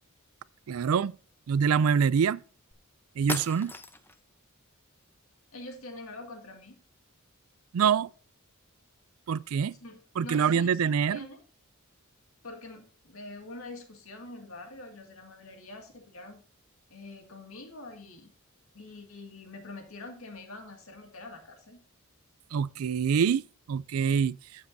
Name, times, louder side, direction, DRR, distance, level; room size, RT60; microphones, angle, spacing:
voice 1, 0.7-1.1 1.5-2.4 3.2-3.7 7.7-8.1 9.3-9.7 10.2-11.2 22.5-23.4 23.7-24.4, right 7 dB, 75° right, 0.4 m, -25 dB
sound 1, 2.7-2.8 3.3-4.2, left 2 dB, 10° left, 0.6 m, -37 dB
voice 2, 5.5-6.8 9.8-11.4 12.4-16.4 16.9-18.3 18.7-21.8, left 2 dB, 70° left, 2.1 m, -45 dB
13.0 x 7.4 x 2.7 m
head